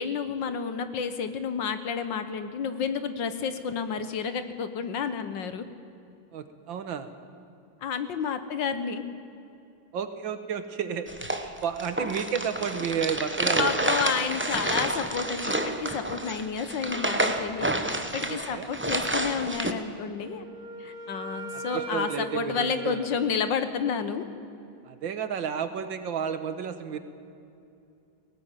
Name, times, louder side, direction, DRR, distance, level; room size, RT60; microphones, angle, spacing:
voice 1, 0.0-5.6 7.8-9.0 13.6-17.7 18.1-20.4 20.8-24.3, left 6 dB, 65° left, 10 dB, 1.7 m, -30 dB
voice 2, 6.3-7.1 9.9-11.1 11.4-13.7 18.3-18.7 21.5-23.1 24.8-27.0, right 7 dB, 70° right, 10 dB, 1.8 m, -32 dB
sound 1, 11.1-19.7, right 1 dB, 10° right, 0.5 m, -29 dB
Wind instrument woodwind instrument, 20.2-24.1, right 3 dB, 90° right, 2.5 m, -39 dB
18.0 x 18.0 x 9.1 m, 2.6 s
omnidirectional pair, 2.3 m